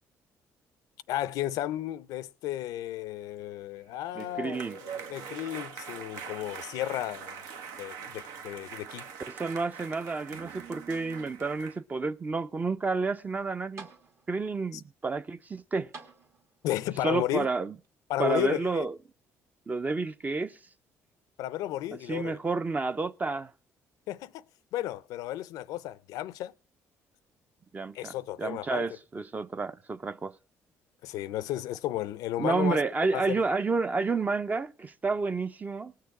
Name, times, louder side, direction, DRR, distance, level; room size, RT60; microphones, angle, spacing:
voice 1, 1.1-7.5 7.8-9.1 14.7-14.8 16.6-17.5 18.1-18.9 21.4-22.4 24.1-24.4 24.7-26.5 27.9-29.0 31.0-32.8 33.1-33.5, left 13 dB, 85° left, 0.5 m, -33 dB
sound 1, 3.9-11.8, right 7 dB, 85° right, 0.9 m, -43 dB
voice 2, 4.2-4.8 9.3-13.9 14.3-15.9 17.0-17.7 18.2-18.9 19.7-20.6 22.1-23.5 27.7-28.1 28.4-30.3 32.4-35.9, right 4 dB, 25° right, 0.5 m, -30 dB
sound 2, 8.8-9.5 9.9-10.9 11.6-11.7 13.3-13.4 13.8-14.5 15.9-16.8 17.8-17.9, right 4 dB, 50° right, 1.5 m, -51 dB
18.5 x 6.6 x 4.7 m
cardioid pair, 90°, 6 cm